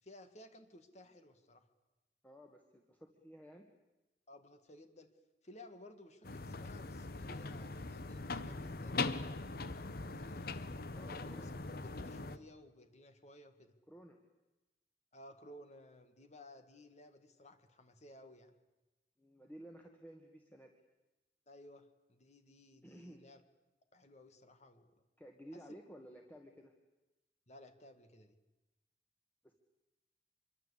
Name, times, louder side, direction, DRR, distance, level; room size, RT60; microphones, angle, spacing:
voice 1, 0.0-1.7 4.3-5.1 5.4-9.3 10.0-13.8 15.1-18.6 21.5-23.4 23.9-24.9 25.5-25.7 27.5-28.4, left 1 dB, 40° left, 8 dB, 2.0 m, -57 dB
voice 2, 2.2-3.7 11.0-11.5 13.9-14.2 19.2-20.7 22.8-23.2 25.2-26.7 29.4-29.5, equal, 10° left, 2 dB, 1.9 m, -54 dB
sound 1, 6.2-12.4, left 3 dB, 55° left, 1.2 m, -41 dB
26.0 x 23.5 x 8.5 m, 1.0 s
head